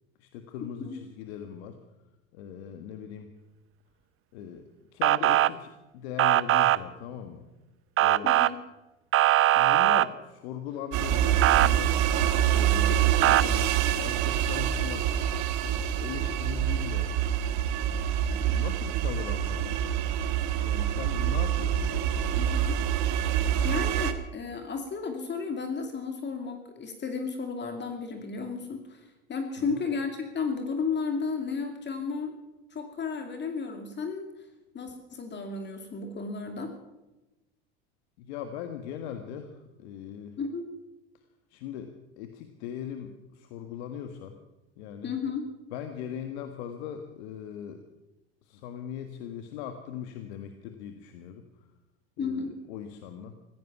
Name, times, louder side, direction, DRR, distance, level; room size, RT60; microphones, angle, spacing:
voice 1, 0.2-1.8 2.3-3.3 4.3-7.4 8.0-8.3 9.5-11.9 12.4-13.7 14.0-15.1 15.6-17.1 18.3-19.9 20.6-22.4 29.6-29.8 38.2-40.4 41.5-44.4 44.8-45.1 45.7-47.8 48.4-51.4 52.2-53.3, left 9 dB, 75° left, 7 dB, 1.6 m, -40 dB
Motor vehicle (road) / Siren, 5.0-5.5 6.2-6.8 8.0-8.5 9.1-10.1 11.4-11.7 13.2-13.4, right 14 dB, 40° right, 0.7 m, -21 dB
voice 2, 8.2-8.6 18.4-18.5 22.4-22.8 23.6-32.3 32.7-34.3 34.7-36.7 40.4-40.6 45.0-45.5 52.2-52.6, left 5 dB, 35° left, 5 dB, 2.4 m, -33 dB
sound 1, 10.9-24.1, right 10 dB, 60° right, 1.6 m, -26 dB
16.0 x 15.0 x 6.0 m, 1.0 s
supercardioid pair, 100°, 33 cm